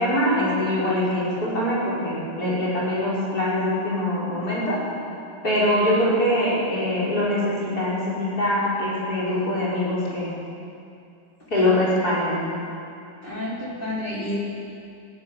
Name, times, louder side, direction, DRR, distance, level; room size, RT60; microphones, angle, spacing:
voice 1, 0.0-4.8 5.4-10.3 11.5-12.4, left 1 dB, 55° left, -6 dB, 6.7 m, -23 dB
voice 2, 13.2-14.4, left 1 dB, 25° left, -5 dB, 4.9 m, -30 dB
20.0 x 15.5 x 9.6 m, 2.5 s
omnidirectional pair, 2.0 m